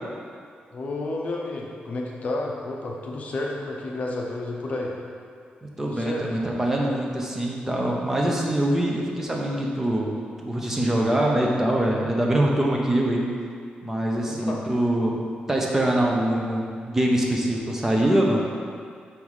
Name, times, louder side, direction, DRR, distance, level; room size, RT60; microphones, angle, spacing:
voice 1, 0.7-4.9 5.8-6.3 14.2-14.6, left 2 dB, 45° left, -1 dB, 0.7 m, -31 dB
voice 2, 5.8-10.1 10.4-13.3 13.8-15.2 15.5-18.4, right 1 dB, 15° right, -2 dB, 0.6 m, -23 dB
4.7 x 4.7 x 5.6 m, 2.2 s
wide cardioid pair, 175°, 3 cm